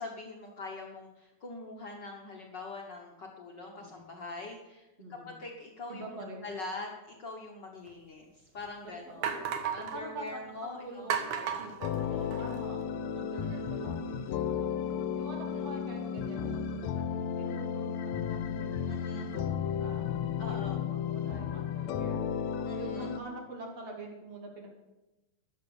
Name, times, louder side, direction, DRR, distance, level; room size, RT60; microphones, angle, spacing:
voice 1, 0.0-9.3 9.7-12.3 13.4-13.7 18.9-19.3 20.4-20.8 22.6-23.2, left 3 dB, 50° left, 0 dB, 1.6 m, -44 dB
voice 2, 3.7-4.1 5.0-5.3 5.9-6.4 8.8-9.5 9.9-11.8 12.1-14.9 15.2-22.2 22.8-24.7, right 2 dB, 60° right, 0 dB, 4.1 m, -46 dB
sound 1, 7.9-8.0 8.6-8.7 9.2-10.0 11.1-12.6, right 7 dB, 75° right, 2.7 m, -34 dB
sound 2, 11.8-23.2, left 7 dB, 75° left, 2.1 m, -33 dB
14.5 x 10.5 x 7.1 m, 1.0 s
omnidirectional pair, 3.3 m